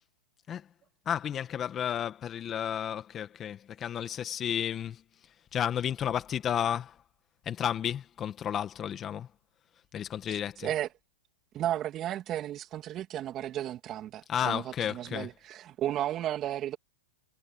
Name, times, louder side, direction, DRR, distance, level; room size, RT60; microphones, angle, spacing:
voice 1, 1.1-5.0 5.5-7.0 7.5-9.3 9.9-10.8 14.3-15.3, left 9 dB, 25° left, 1.8 m, -32 dB
voice 2, 10.3-10.9 11.5-14.6 14.9-16.8, right 12 dB, 30° right, 3.0 m, -34 dB
hypercardioid pair, 125°, 0 cm